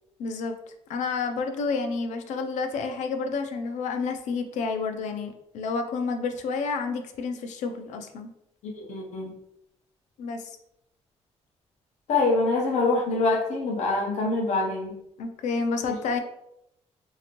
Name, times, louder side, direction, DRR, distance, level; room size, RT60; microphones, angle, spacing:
voice 1, 0.2-0.5 0.9-8.3 10.2-10.6 15.2-16.2, left 4 dB, 90° left, 6 dB, 0.4 m, -30 dB
voice 2, 8.7-9.3 12.1-15.0, left 3 dB, 70° left, 0 dB, 0.8 m, -25 dB
2.8 x 2.5 x 2.9 m, 0.81 s
cardioid pair, 175°, 12 cm